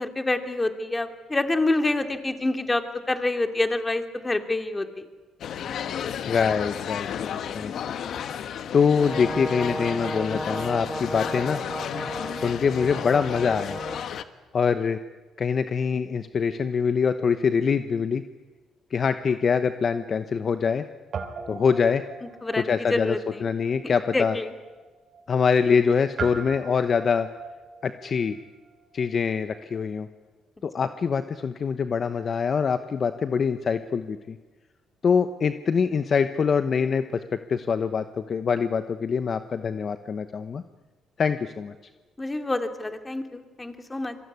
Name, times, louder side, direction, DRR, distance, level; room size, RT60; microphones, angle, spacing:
voice 1, 0.0-5.1 22.4-23.4 23.8-24.5 42.2-44.2, left 2 dB, 15° left, 6 dB, 2.7 m, -27 dB
sound 1, 5.4-14.2, left 8 dB, 65° left, 1.4 m, -33 dB
voice 2, 6.3-7.9 8.7-11.6 12.3-13.8 14.5-15.0 15.4-18.2 18.9-20.8 21.5-22.0 22.6-24.4 25.3-27.3 27.8-28.4 28.9-30.1 30.6-34.4 35.0-40.6 41.2-41.7, left 6 dB, 45° left, 10 dB, 1.0 m, -24 dB
Brass instrument, 8.9-14.1, right 1 dB, 10° right, 1.5 m, -34 dB
Guitar, 20.0-20.8 21.1-29.8, right 5 dB, 55° right, 3.4 m, -41 dB
26.5 x 23.0 x 9.6 m, 1.3 s
cardioid pair, 85°, 0 cm